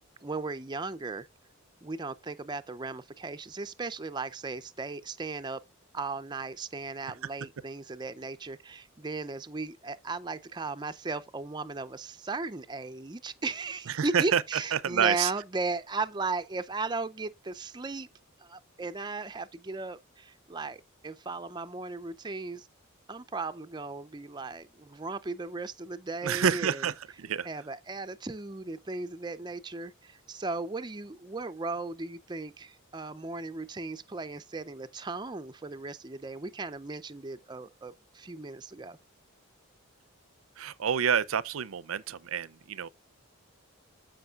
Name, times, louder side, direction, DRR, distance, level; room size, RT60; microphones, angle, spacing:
voice 1, 0.2-1.3 1.8-5.6 5.9-18.1 18.4-22.7 23.1-26.8 27.4-39.0, right 3 dB, 20° right, 0.5 m, -36 dB
voice 2, 14.0-14.4 14.7-15.3 26.2-27.5 40.6-42.9, right 7 dB, 70° right, 0.5 m, -28 dB
13.5 x 5.1 x 2.4 m
head